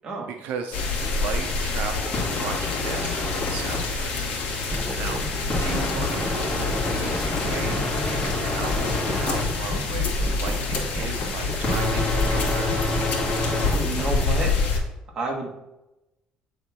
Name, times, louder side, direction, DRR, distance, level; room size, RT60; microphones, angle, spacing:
voice 1, 0.2-5.3 5.6-12.7, right 6 dB, 85° right, 5 dB, 0.7 m, -36 dB
sound 1, 0.7-14.8, left 4 dB, 75° left, 1.7 m, -27 dB
sound 2, 2.1-3.8 5.5-9.4 11.6-13.7, left 2 dB, 25° left, 2.0 m, -28 dB
sound 3, 4.7-6.4 6.7-8.4 8.7-14.3, equal, ahead, 0.4 m, -32 dB
voice 2, 5.7-6.8 13.6-14.5 15.1-15.5, right 2 dB, 30° right, -1 dB, 1.6 m, -32 dB
8.5 x 3.6 x 4.3 m, 0.94 s
cardioid pair, 160°, 3 cm